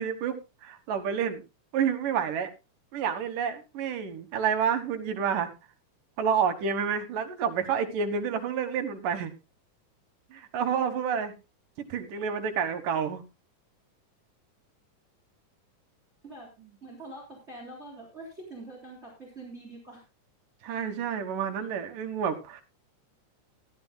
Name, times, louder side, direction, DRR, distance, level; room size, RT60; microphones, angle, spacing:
voice 1, 0.0-1.4 1.7-2.5 2.9-5.5 6.2-9.3 10.3-11.3 11.8-13.2 20.6-22.6, right 7 dB, 85° right, 8 dB, 3.0 m, -29 dB
voice 2, 16.8-20.0, right 2 dB, 20° right, -1 dB, 3.8 m, -44 dB
18.0 x 13.0 x 2.2 m, 0.26 s
omnidirectional pair, 3.7 m